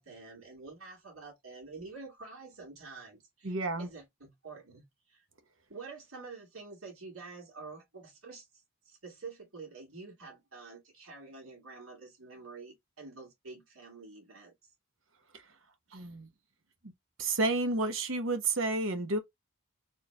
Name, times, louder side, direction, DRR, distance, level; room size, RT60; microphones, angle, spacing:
voice 1, 0.0-5.2 5.7-14.5, right 4 dB, 85° right, 2.5 m, -48 dB
voice 2, 3.4-3.9 15.9-16.3 17.2-19.2, right 2 dB, 65° right, 1.0 m, -30 dB
4.5 x 3.3 x 3.3 m
head